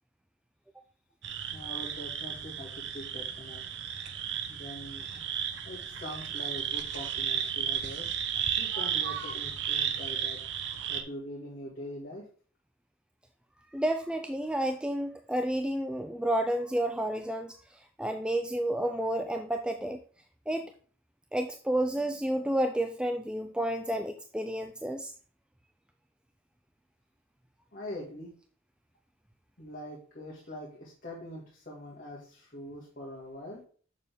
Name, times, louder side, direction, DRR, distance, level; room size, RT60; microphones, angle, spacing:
sound 1, 1.2-11.0, right 8 dB, 60° right, 0.9 m, -34 dB
voice 1, 1.5-3.6 4.5-5.1 5.7-8.1 8.6-10.4 10.9-12.2 27.7-28.3 29.6-33.6, left 1 dB, 45° left, -4 dB, 2.1 m, -43 dB
voice 2, 13.7-20.0 20.5-20.7 21.3-25.1, right 1 dB, 5° right, 6 dB, 0.4 m, -31 dB
6.9 x 6.7 x 3.5 m, 0.43 s
head